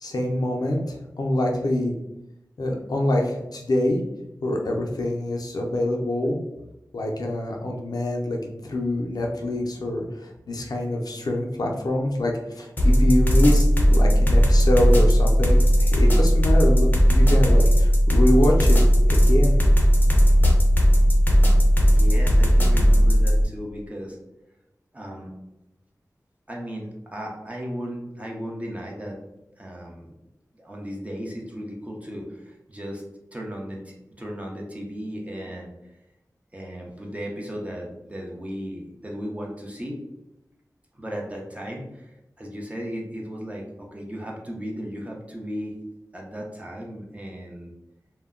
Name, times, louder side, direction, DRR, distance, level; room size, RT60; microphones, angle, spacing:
voice 1, 0.0-1.9 2.6-4.0 4.4-6.4 6.9-18.8 19.1-19.6, left 1 dB, 75° left, 0 dB, 0.5 m, -25 dB
sound 1, 12.8-23.4, equal, 25° left, 0.6 m, -17 dB
voice 2, 21.9-24.2 24.9-25.3 26.5-29.2 29.6-30.1 30.5-33.0 33.3-35.7 36.5-40.0 40.9-42.1 42.4-45.7 46.1-47.7, equal, 20° right, -1 dB, 0.6 m, -35 dB
2.1 x 2.1 x 3.5 m, 0.91 s
wide cardioid pair, 70°, 7 cm